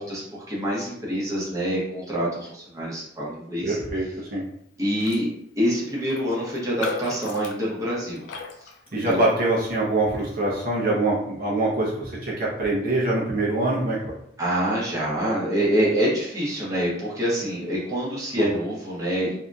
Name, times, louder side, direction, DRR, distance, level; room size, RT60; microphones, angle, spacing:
voice 1, 0.0-3.8 4.8-5.3 5.6-8.2 8.6-8.7 9.0-9.2 14.4-19.3, equal, 20° right, -6 dB, 0.8 m, -26 dB
voice 2, 3.6-4.4 8.9-14.1 18.4-18.5, right 2 dB, 55° right, -5 dB, 0.7 m, -24 dB
Raindrop, 4.9-5.3 5.6-5.7 6.0-9.6 10.1-10.3, left 5 dB, 75° left, 0.3 m, -37 dB
2.7 x 2.5 x 2.3 m, 0.73 s
head